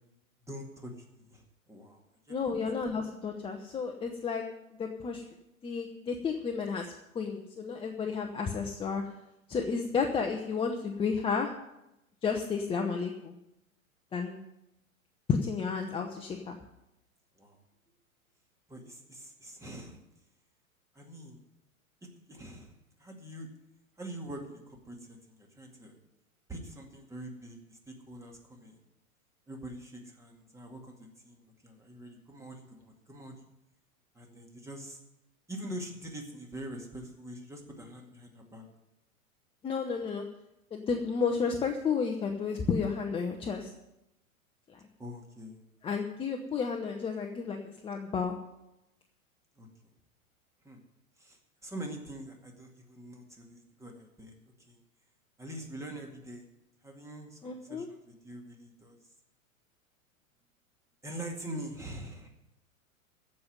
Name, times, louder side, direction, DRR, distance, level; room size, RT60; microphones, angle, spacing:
voice 1, 0.5-2.0 2.3-2.5 17.4-17.6 18.7-20.0 20.9-21.4 22.3-23.5 24.0-26.0 26.5-28.8 29.5-33.5 34.1-35.0 35.5-38.6 45.0-45.6 49.6-49.7 50.6-50.8 51.2-54.8 55.4-56.5 56.8-59.0 61.0-62.3, right 1 dB, 5° right, 2 dB, 2.1 m, -44 dB
voice 2, 2.3-4.4 4.8-5.2 5.6-6.8 7.1-9.0 9.5-11.5 12.2-13.4 14.1-14.4 15.3-16.6 39.6-40.2 40.7-43.7 45.8-47.6 47.8-48.3 57.4-57.9, left 5 dB, 15° left, 2 dB, 0.8 m, -32 dB
15.0 x 5.4 x 9.4 m, 0.89 s
figure-of-eight pair, 100°, 42 cm